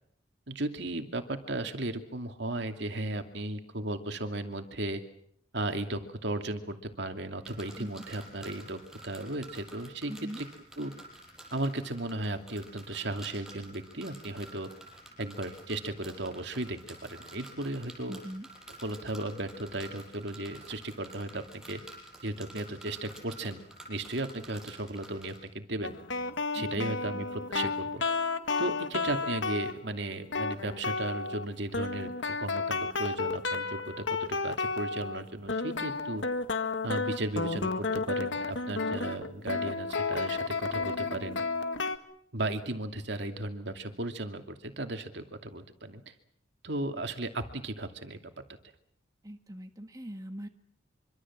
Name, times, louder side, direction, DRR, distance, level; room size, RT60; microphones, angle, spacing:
voice 1, 0.5-5.0 5.5-10.5 10.8-10.9 11.5-14.7 15.2-18.2 18.8-21.8 22.2-23.6 23.9-25.9 26.5-28.0 28.6-32.1 32.4-36.2 36.8-41.4 42.3-46.1 46.6-48.2, right 2 dB, 60° right, 6 dB, 2.6 m, -35 dB
sound 1, 7.4-25.4, right 1 dB, 5° right, 6.3 m, -50 dB
voice 2, 10.1-10.4 18.1-18.5 26.5-27.3 49.2-50.5, equal, 20° right, 5 dB, 1.7 m, -42 dB
sound 2, 25.8-29.8 30.3-31.5 31.7-35.2 35.5-42.0, left 3 dB, 75° left, 1.8 m, -32 dB
25.0 x 25.0 x 7.4 m, 0.69 s
head